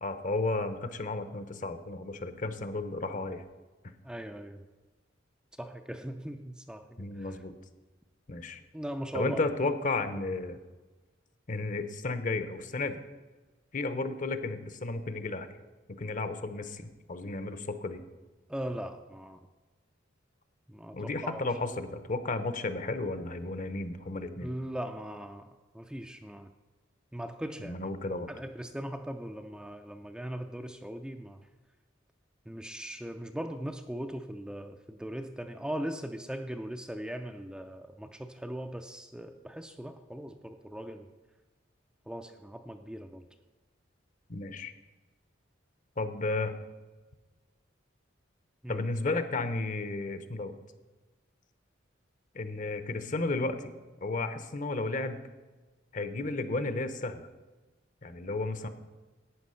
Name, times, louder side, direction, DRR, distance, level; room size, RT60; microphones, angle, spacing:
voice 1, 0.0-3.4 7.0-7.5 8.3-8.6 9.1-10.6 11.5-13.0 13.7-15.5 16.0-18.0 20.9-24.5 27.6-28.3 44.3-44.7 46.0-46.5 48.7-50.5 52.3-53.7 54.0-55.2 55.9-57.3 58.0-58.7, left 2 dB, 45° left, 11 dB, 0.8 m, -33 dB
voice 2, 4.0-4.6 5.6-7.4 8.7-9.5 18.5-19.5 20.7-21.4 24.4-26.5 27.1-31.5 32.5-41.1 42.1-43.2 48.6-48.8, right 1 dB, 5° right, 6 dB, 0.4 m, -39 dB
11.5 x 8.8 x 5.6 m, 1.2 s
head